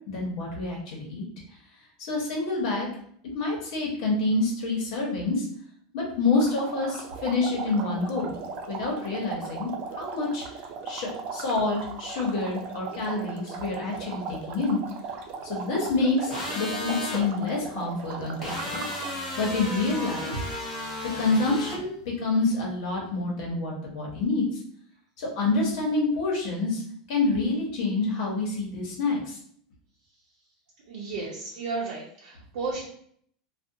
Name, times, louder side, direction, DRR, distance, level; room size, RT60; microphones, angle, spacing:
voice 1, 0.1-1.3 2.0-2.9 3.3-5.5 5.9-8.3 8.7-10.4 10.8-14.8 15.4-18.8 19.4-20.4 21.2-24.6 25.2-26.8 27.1-29.4, left 3 dB, 65° left, -2 dB, 0.9 m, -27 dB
sound 1, 6.4-19.2, right 5 dB, 40° right, 0.3 m, -38 dB
sound 2, 16.3-17.2 18.4-21.8, left 1 dB, 5° left, 0.8 m, -34 dB
voice 2, 30.9-32.8, right 3 dB, 70° right, -6 dB, 0.7 m, -33 dB
2.5 x 2.1 x 2.6 m, 0.63 s
supercardioid pair, 150°, 4 cm